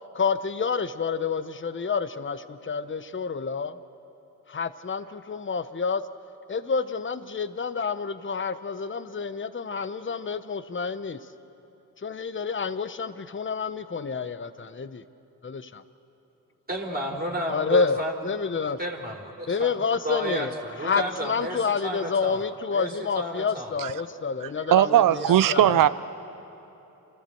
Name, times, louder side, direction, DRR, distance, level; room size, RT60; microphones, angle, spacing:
voice 1, 0.1-3.8 4.5-6.0 6.5-11.2 12.0-14.9 15.4-15.6 17.5-18.0 18.2-18.8 19.5-20.5 20.8-25.9, left 5 dB, 30° left, 13 dB, 0.9 m, -28 dB
voice 2, 16.7-18.1 18.8-19.7 20.0-22.4 22.7-23.7 25.1-25.7, equal, 20° right, -1 dB, 3.7 m, -32 dB
voice 3, 24.4-25.9, right 11 dB, 55° right, 15 dB, 0.6 m, -19 dB
28.0 x 14.0 x 7.8 m, 2.9 s
supercardioid pair, 45°, 41 cm